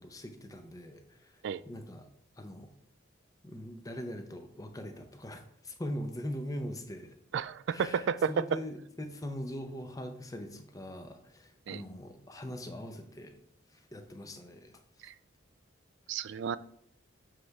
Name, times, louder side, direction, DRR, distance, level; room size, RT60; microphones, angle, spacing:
voice 1, 0.0-2.1 2.4-2.7 3.4-7.2 7.7-13.4 13.7-14.7 15.0-15.1, equal, 15° left, 0.6 m, -42 dB
voice 2, 7.3-8.6 11.7-11.8 15.0-15.1 16.1-16.6, right 6 dB, 60° right, 0.3 m, -31 dB
7.7 x 3.3 x 4.6 m
head